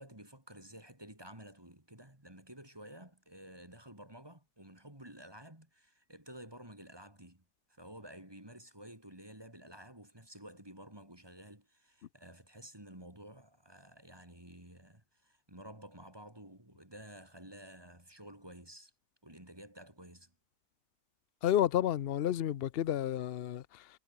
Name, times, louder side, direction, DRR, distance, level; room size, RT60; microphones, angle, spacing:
voice 1, 0.0-7.4 7.7-18.9 19.2-20.3, right 1 dB, 15° right, 3.3 m, -52 dB
voice 2, 21.4-23.9, left 11 dB, 70° left, 0.5 m, -31 dB
omnidirectional pair, 1.7 m